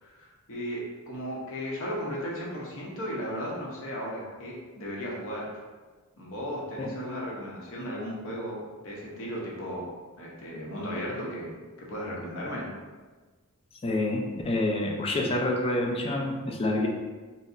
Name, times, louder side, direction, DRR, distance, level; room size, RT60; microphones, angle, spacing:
voice 1, 0.0-5.5 6.2-12.7, equal, 65° left, -4 dB, 0.8 m, -35 dB
voice 2, 13.8-16.9, left 2 dB, 25° left, 0 dB, 0.3 m, -27 dB
3.9 x 2.0 x 2.4 m, 1.3 s
head